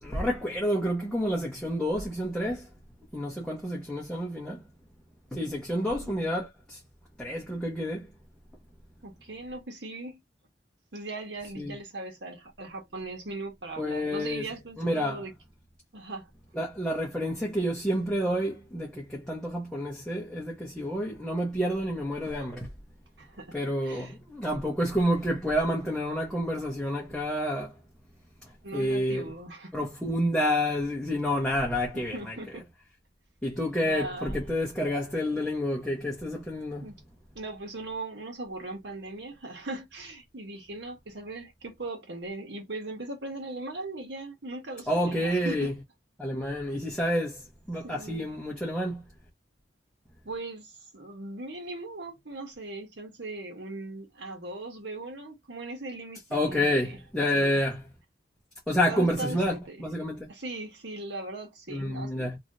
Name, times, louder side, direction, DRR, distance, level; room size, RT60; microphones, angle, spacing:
voice 1, 0.0-2.7 3.1-4.6 5.3-6.8 7.2-8.1 11.6-11.7 13.8-15.2 16.5-22.7 23.5-27.8 28.4-29.3 29.7-32.4 33.4-36.9 44.9-45.7 46.2-49.0 56.3-57.8 58.7-60.3 61.7-62.4, equal, 5° left, 1.0 m, -29 dB
voice 2, 5.7-6.2 9.0-10.2 10.9-15.3 15.9-16.3 23.2-24.1 28.6-29.8 31.9-32.6 33.8-34.4 36.8-36.9 37.3-45.7 47.8-48.3 50.2-57.0 57.3-57.6 58.9-59.8 60.3-62.3, right 2 dB, 85° right, 1.4 m, -39 dB
3.1 x 2.8 x 2.6 m
head